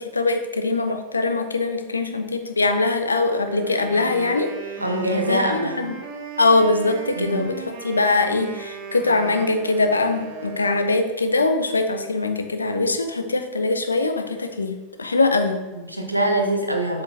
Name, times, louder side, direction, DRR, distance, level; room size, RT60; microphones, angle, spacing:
voice 1, 0.0-4.5 5.3-5.9 6.4-15.6, left 3 dB, 75° left, 7 dB, 0.5 m, -22 dB
Wind instrument woodwind instrument, 3.5-11.1, right 5 dB, 50° right, 0.9 m, -36 dB
voice 2, 4.8-5.8 7.2-7.5 15.7-17.0, right 1 dB, 85° right, 3 dB, 0.8 m, -23 dB
7.4 x 5.9 x 2.5 m, 1.1 s
figure-of-eight pair, 90°, 0 cm